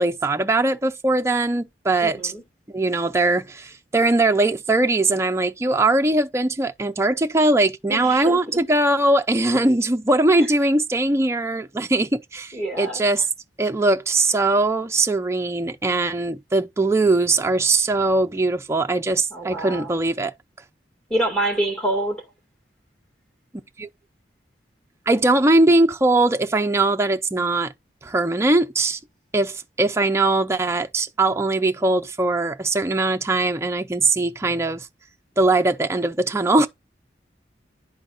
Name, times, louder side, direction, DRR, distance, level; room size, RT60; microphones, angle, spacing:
voice 1, 0.0-2.3 2.7-13.3 13.6-20.3 23.8-23.9 25.1-27.7 28.0-29.0 29.3-34.9 35.4-36.7, right 2 dB, 15° right, 0.5 m, -20 dB
voice 2, 2.0-2.4 7.9-8.4 10.3-10.5 12.5-13.0 19.3-20.0 21.1-22.2, right 1 dB, 5° left, 2.1 m, -26 dB
11.0 x 4.0 x 2.4 m
head